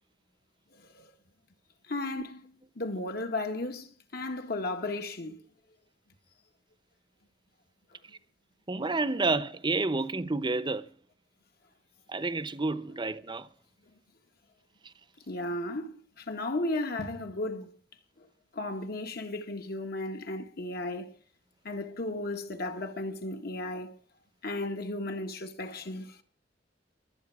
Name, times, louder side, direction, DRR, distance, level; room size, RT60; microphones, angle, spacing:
voice 1, 1.9-2.4 2.7-5.4 15.3-17.7 18.5-21.1 21.6-23.9 24.4-26.2, left 2 dB, 55° left, 1.8 m, -34 dB
voice 2, 8.7-10.8 12.1-13.5, right 3 dB, 25° right, 0.9 m, -29 dB
23.5 x 9.1 x 4.9 m
head